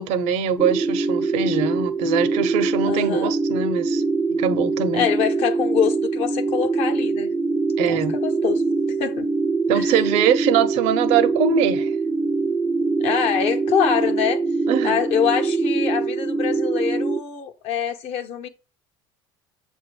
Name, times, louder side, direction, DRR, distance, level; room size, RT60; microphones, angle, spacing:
voice 1, 0.0-4.0 4.3-5.1 7.8-8.2 9.7-11.9 14.7-15.0, right 7 dB, 70° right, 0.8 m, -22 dB
sound 1, 0.6-17.2, right 3 dB, 5° right, 0.4 m, -23 dB
voice 2, 2.9-3.3 4.9-7.3 7.9-8.6 9.0-9.3 9.7-9.9 13.0-14.4 14.8-18.5, left 8 dB, 55° left, 1.0 m, -24 dB
7.4 x 2.6 x 5.3 m
supercardioid pair, 105°, 12 cm